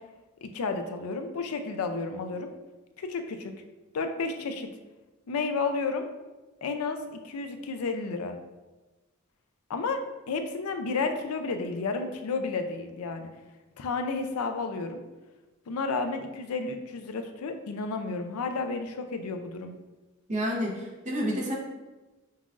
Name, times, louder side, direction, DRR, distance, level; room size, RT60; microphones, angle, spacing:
voice 1, 0.4-2.5 3.0-3.5 3.9-4.7 5.3-6.1 6.6-8.4 9.7-10.0 10.3-13.3 13.8-15.0 15.7-19.7, left 4 dB, 85° left, 6 dB, 0.4 m, -31 dB
voice 2, 20.3-21.5, equal, 35° right, -2 dB, 0.7 m, -29 dB
5.5 x 2.4 x 2.4 m, 1.1 s
head